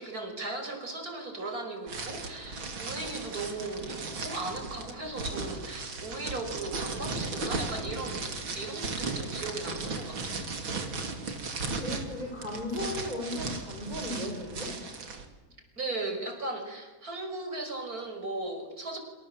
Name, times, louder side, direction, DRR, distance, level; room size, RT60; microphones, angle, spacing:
voice 1, 0.0-8.2 8.5-10.5 15.8-19.0, right 2 dB, 45° right, 5 dB, 5.6 m, -37 dB
sound 1, 1.9-15.2, right 3 dB, 80° right, 3.7 m, -36 dB
voice 2, 11.8-14.7, left 1 dB, 20° left, 0 dB, 5.0 m, -36 dB
28.5 x 27.0 x 7.7 m, 1.3 s
omnidirectional pair, 2.1 m